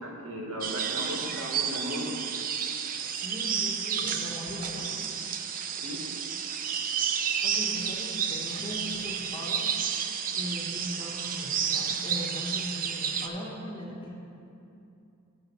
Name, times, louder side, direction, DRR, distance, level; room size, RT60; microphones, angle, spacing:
voice 1, 0.0-2.1 5.8-6.0, equal, 70° right, 0 dB, 1.4 m, -36 dB
sound 1, 0.6-13.3, right 7 dB, 40° right, 0.4 m, -31 dB
voice 2, 3.0-4.9 7.4-10.0 10.3-14.1, equal, 20° left, -3 dB, 1.3 m, -39 dB
8.2 x 6.0 x 5.5 m, 2.6 s
head